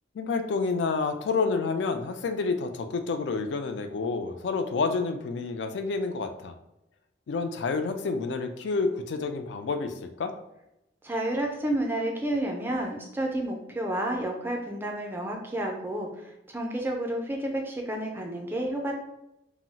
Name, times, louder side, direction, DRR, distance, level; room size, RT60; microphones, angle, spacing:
voice 1, 0.1-6.5 7.3-10.3, left 4 dB, 65° left, 7 dB, 0.3 m, -29 dB
voice 2, 11.0-18.9, right 1 dB, 10° right, 1 dB, 0.4 m, -30 dB
2.2 x 2.0 x 3.8 m, 0.87 s
head